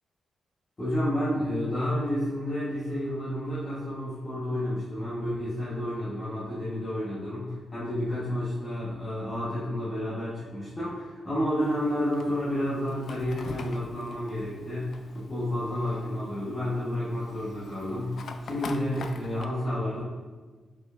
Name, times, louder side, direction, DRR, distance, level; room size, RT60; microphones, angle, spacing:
voice 1, 0.8-18.1 18.4-20.0, left 1 dB, 25° left, -10 dB, 1.1 m, -30 dB
Fire, 11.6-19.5, left 4 dB, 60° left, 0.3 m, -44 dB
4.6 x 4.4 x 2.4 m, 1.4 s
wide cardioid pair, 130°, 0 cm